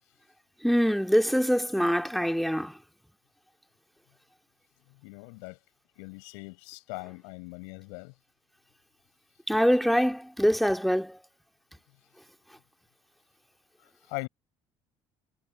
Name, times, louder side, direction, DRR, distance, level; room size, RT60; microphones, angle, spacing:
voice 1, 0.6-2.7 9.5-11.2, equal, ahead, 2.8 m, -24 dB
voice 2, 5.0-5.6 6.0-8.1 14.1-14.3, left 38 dB, 75° left, 7.5 m, -40 dB
hypercardioid pair, 60°, 15 cm